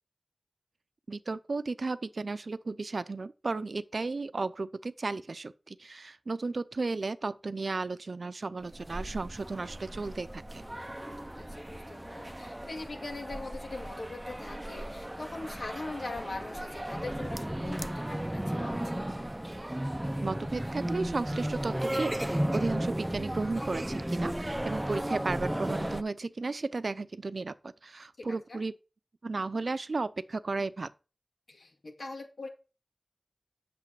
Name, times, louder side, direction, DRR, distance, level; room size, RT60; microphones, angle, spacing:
voice 1, 1.1-10.6 20.2-28.7 29.2-30.9, right 3 dB, 75° right, 0.6 m, -34 dB
sound 1, 8.7-26.0, right 1 dB, 15° right, 0.7 m, -35 dB
voice 2, 11.4-19.0 28.2-28.6 31.5-32.5, left 2 dB, 85° left, 2.4 m, -41 dB
8.4 x 6.9 x 4.8 m
wide cardioid pair, 60°, 0 cm